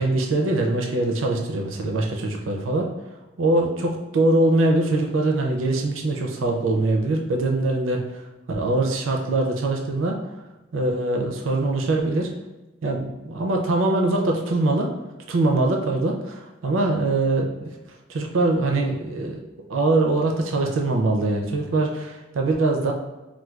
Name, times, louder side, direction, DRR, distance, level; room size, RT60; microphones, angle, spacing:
voice 1, 0.0-2.9 3.4-8.0 8.5-10.2 10.7-12.3 12.8-14.9 15.3-17.7 18.1-19.4 19.7-22.9, right 2 dB, 80° right, 1 dB, 0.5 m, -22 dB
4.4 x 2.2 x 2.3 m, 1.1 s
head